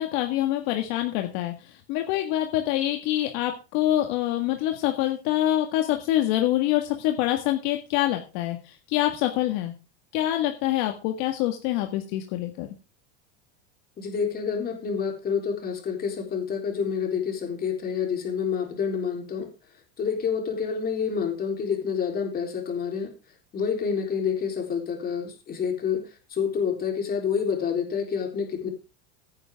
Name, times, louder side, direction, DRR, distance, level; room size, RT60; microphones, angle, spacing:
voice 1, 0.0-1.5 1.9-9.7 10.1-12.7, left 13 dB, 55° left, 4 dB, 1.8 m, -25 dB
voice 2, 14.0-19.5 20.0-23.1 23.5-26.0 26.3-28.7, left 6 dB, 25° left, 3 dB, 3.8 m, -28 dB
15.5 x 10.0 x 3.6 m, 0.30 s
supercardioid pair, 150°, 35 cm